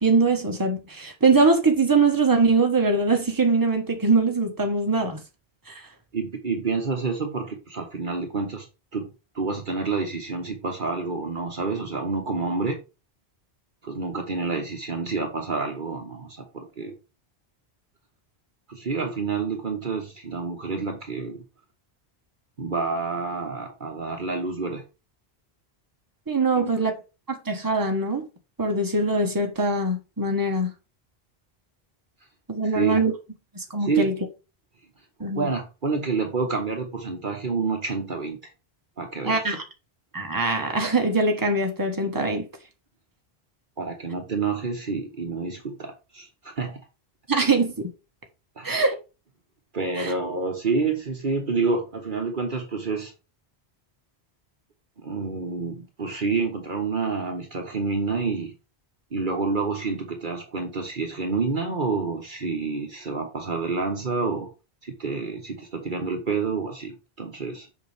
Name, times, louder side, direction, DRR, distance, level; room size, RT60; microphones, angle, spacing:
voice 1, 0.0-5.2 5.7-5.9 26.3-26.9 27.3-28.2 28.6-30.7 32.5-33.1 33.5-34.1 35.2-35.5 39.2-39.6 40.1-42.5 47.3-47.9 48.6-48.9 50.0-50.1, right 3 dB, 20° right, 1.4 m, -22 dB
voice 2, 6.1-8.7 8.9-12.8 13.8-16.9 18.7-21.4 22.6-24.8 26.6-26.9 32.6-33.0 33.8-34.1 35.3-38.5 39.0-39.5 43.8-46.8 48.6-48.7 49.7-53.1 55.0-58.5 59.1-64.5 64.8-67.7, right 4 dB, 50° right, 1.3 m, -28 dB
6.7 x 5.9 x 3.5 m
omnidirectional pair, 1.1 m